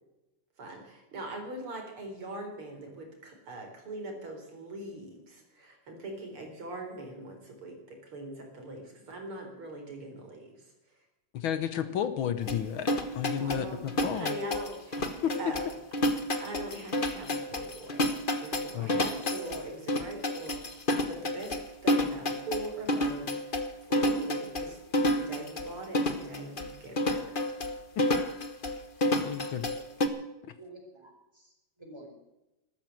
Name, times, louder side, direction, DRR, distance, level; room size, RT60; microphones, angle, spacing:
voice 1, 0.6-11.0 13.3-13.8 14.1-15.1 15.4-15.7 16.4-18.0 18.4-20.8 21.0-24.8 25.1-27.6, right 2 dB, 70° right, 3 dB, 4.8 m, -42 dB
voice 2, 11.3-14.3 15.2-15.5 18.7-18.9 28.0-28.1 29.1-29.7, left 9 dB, 70° left, 12 dB, 1.7 m, -32 dB
sound 1, 12.5-30.1, left 1 dB, 30° left, 1.2 m, -30 dB
voice 3, 29.2-30.1 30.6-32.1, right 2 dB, 10° right, 0 dB, 5.4 m, -51 dB
13.5 x 13.0 x 7.6 m, 0.95 s
omnidirectional pair, 2.4 m